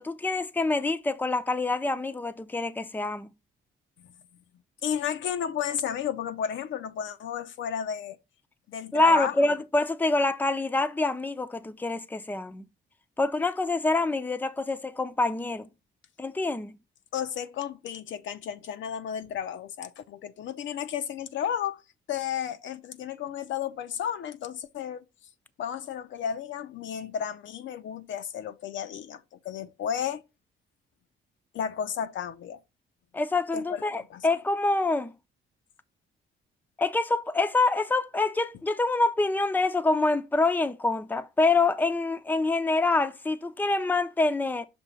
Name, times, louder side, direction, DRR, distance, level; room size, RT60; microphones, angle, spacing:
voice 1, 0.0-3.3 8.9-12.6 13.2-15.7 16.2-16.7 33.1-35.1 36.8-44.7, left 3 dB, 10° left, 0.6 m, -26 dB
voice 2, 4.8-8.2 8.7-9.6 17.1-21.8 22.1-25.0 25.6-30.2 31.5-32.6 33.5-33.8 34.1-34.2, left 8 dB, 70° left, 0.7 m, -33 dB
6.2 x 2.9 x 5.6 m
cardioid pair, 90°, 20 cm